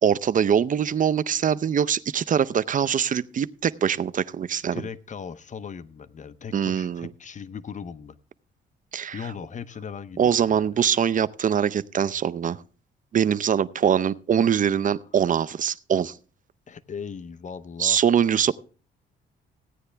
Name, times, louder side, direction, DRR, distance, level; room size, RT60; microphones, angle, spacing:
voice 1, 0.0-4.8 6.5-7.1 8.9-9.2 10.2-12.6 13.1-16.1 17.8-18.5, right 8 dB, 40° right, 0.6 m, -23 dB
voice 2, 4.7-8.2 9.1-10.7 16.7-18.0, left 6 dB, 40° left, 0.8 m, -38 dB
16.0 x 9.5 x 3.4 m
cardioid pair, 90°, 20 cm